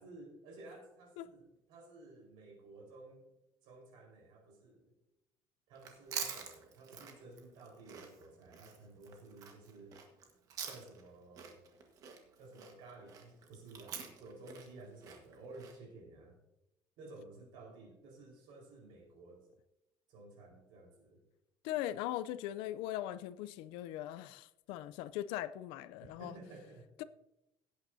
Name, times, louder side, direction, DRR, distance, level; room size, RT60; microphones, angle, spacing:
voice 1, 0.0-3.3 3.6-4.9 5.7-10.0 10.6-11.6 12.4-16.4 17.0-19.5 20.1-21.2 26.0-26.8, right 2 dB, 65° right, 4.4 m, -54 dB
Chewing mastication, 5.7-11.1 11.4-15.8, right 7 dB, 40° right, 1.4 m, -46 dB
voice 2, 21.6-26.3 27.0-27.1, left 13 dB, 85° left, 0.5 m, -40 dB
17.0 x 8.9 x 2.7 m
cardioid pair, 180°, 9 cm